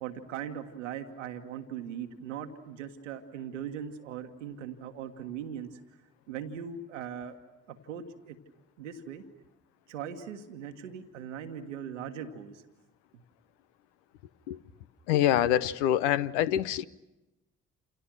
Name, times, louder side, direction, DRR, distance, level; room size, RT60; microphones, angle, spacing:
voice 1, 0.0-5.8 6.3-7.4 7.7-8.4 8.8-9.2 9.9-12.6 13.1-13.2, right 8 dB, 85° right, 1.4 m, -40 dB
voice 2, 15.1-16.8, left 12 dB, 75° left, 0.9 m, -25 dB
29.5 x 28.5 x 6.2 m
hypercardioid pair, 45°, 36 cm